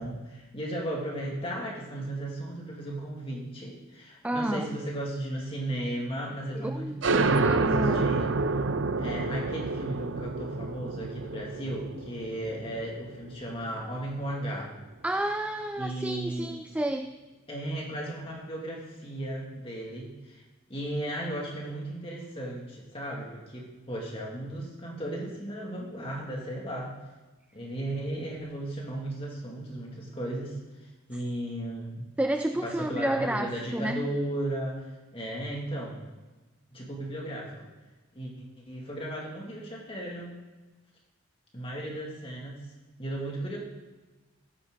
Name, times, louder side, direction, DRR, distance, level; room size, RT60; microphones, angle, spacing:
voice 1, 0.0-8.3 9.0-14.7 15.8-16.5 17.5-20.4 20.7-27.0 27.5-32.1 32.6-36.0 36.7-37.7 38.1-38.3 38.7-40.3 41.5-42.7 43.0-43.6, right 1 dB, 25° left, -2 dB, 2.6 m, -35 dB
voice 2, 4.2-4.7 6.5-8.1 15.0-17.1 31.1-31.2 32.2-34.1, right 1 dB, 5° right, 6 dB, 0.4 m, -30 dB
sound 1, 7.0-14.3, right 3 dB, 70° right, 0.6 m, -28 dB
15.5 x 10.0 x 4.0 m, 1.2 s
head